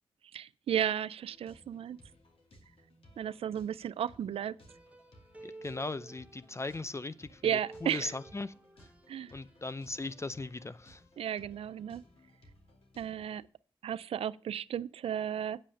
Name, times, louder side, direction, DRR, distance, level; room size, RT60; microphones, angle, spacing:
voice 1, 0.3-2.0 3.2-4.6 7.4-8.1 9.1-9.3 11.2-12.0 13.0-13.4 13.8-15.6, right 9 dB, 80° right, 0.4 m, -34 dB
sound 1, 1.2-13.5, left 1 dB, 70° left, 2.3 m, -60 dB
sound 2, 4.7-7.3 7.5-9.7 10.0-10.3, right 2 dB, 15° right, 1.1 m, -53 dB
voice 2, 5.4-8.5 8.8-8.9 9.3-11.0, left 3 dB, 30° left, 0.5 m, -39 dB
8.8 x 5.5 x 6.4 m
supercardioid pair, 40°, 10 cm